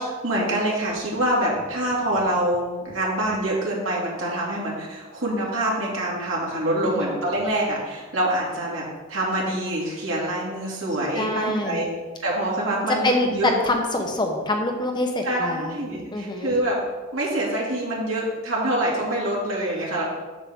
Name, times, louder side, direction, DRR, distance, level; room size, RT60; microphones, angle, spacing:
voice 1, 0.0-11.9 12.2-13.5 15.3-16.8 17.1-20.0, right 1 dB, 70° right, -4 dB, 2.5 m, -25 dB
voice 2, 6.8-7.2 11.1-11.8 13.0-15.8 16.1-16.5, left 2 dB, 20° left, 2 dB, 0.8 m, -25 dB
8.0 x 7.2 x 3.6 m, 1.3 s
head